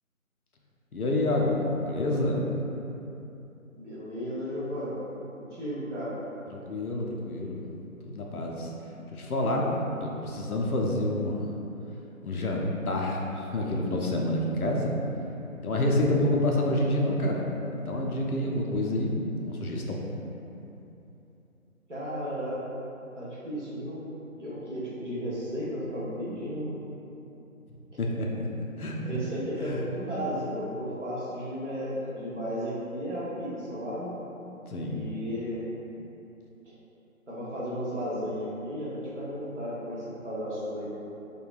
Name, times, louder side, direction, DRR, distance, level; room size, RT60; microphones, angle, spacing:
voice 1, 0.9-2.5 6.5-7.6 8.0-8.7 9.1-9.7 10.0-11.5 12.2-14.9 15.6-17.5 17.7-20.1 28.0-28.5 28.8-29.2 29.6-29.8 34.7-35.0, left 1 dB, 90° left, -1 dB, 0.6 m, -28 dB
voice 2, 3.8-6.2 21.9-22.6 23.1-24.0 24.4-26.7 29.0-34.2 34.9-35.7 37.3-41.0, equal, 55° right, -8 dB, 1.0 m, -34 dB
3.6 x 2.2 x 2.4 m, 2.9 s
figure-of-eight pair, 165°, 43 cm